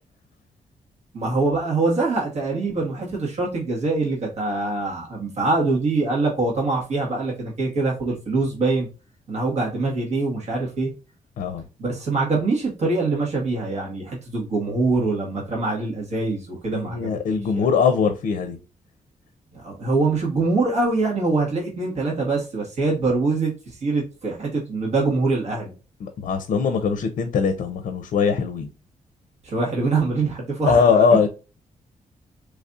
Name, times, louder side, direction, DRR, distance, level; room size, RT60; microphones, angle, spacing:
voice 1, 1.1-8.9 9.3-10.9 11.8-17.6 19.5-25.7 29.4-31.1, right 3 dB, 55° right, -3 dB, 1.5 m, -24 dB
voice 2, 16.7-18.6 26.0-28.7 30.7-31.3, left 6 dB, 70° left, 8 dB, 0.6 m, -21 dB
4.0 x 3.1 x 2.3 m, 0.32 s
wide cardioid pair, 155°, 13 cm